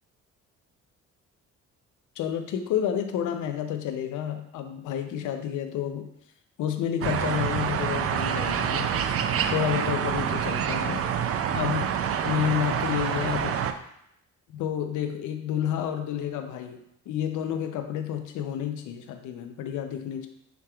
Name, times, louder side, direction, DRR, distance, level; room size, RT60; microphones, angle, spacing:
voice 1, 2.2-6.1 6.6-8.9 9.5-11.0 11.5-13.6 14.5-20.3, left 9 dB, 80° left, 7 dB, 0.6 m, -30 dB
sound 1, 7.0-13.7, right 8 dB, 50° right, 0.4 m, -27 dB
5.8 x 3.4 x 2.3 m, 0.78 s
cardioid pair, 90°, 30 cm